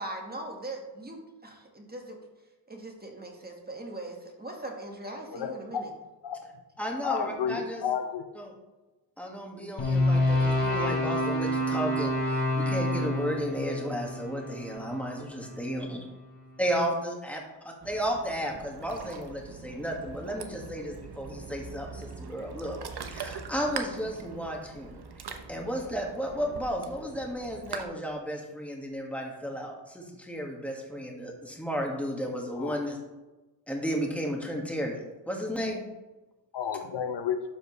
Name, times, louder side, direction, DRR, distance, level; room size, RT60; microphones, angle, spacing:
voice 1, 0.0-2.2 2.7-5.9, right 2 dB, 20° right, 1 dB, 1.8 m, -40 dB
voice 2, 5.3-5.9 6.2-6.4 7.0-8.3 32.6-32.8 36.5-37.4, left 7 dB, 70° left, 8 dB, 0.8 m, -31 dB
voice 3, 6.8-7.8 8.4-8.5 9.2-16.0 16.6-17.4 17.9-33.0 33.7-35.0 35.3-35.8, equal, 5° left, 0 dB, 1.9 m, -33 dB
sound 1, 9.8-16.0, left 1 dB, 85° left, 2.3 m, -28 dB
Ocean, 17.8-27.8, right 5 dB, 60° right, 1.0 m, -42 dB
12.0 x 5.1 x 3.3 m, 1.1 s
cardioid pair, 85°, 44 cm